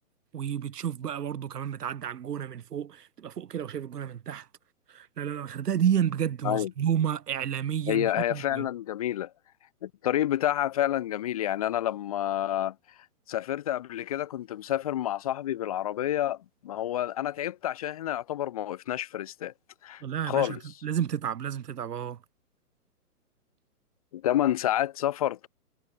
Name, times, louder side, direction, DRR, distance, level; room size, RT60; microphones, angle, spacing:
voice 1, 0.3-4.5 4.9-8.7 20.0-22.2, right 9 dB, 80° right, 1.2 m, -31 dB
voice 2, 7.9-9.3 9.8-12.7 13.3-16.4 16.6-19.5 19.8-20.6 24.1-25.5, left 12 dB, 25° left, 1.6 m, -29 dB
hypercardioid pair, 175°, 46 cm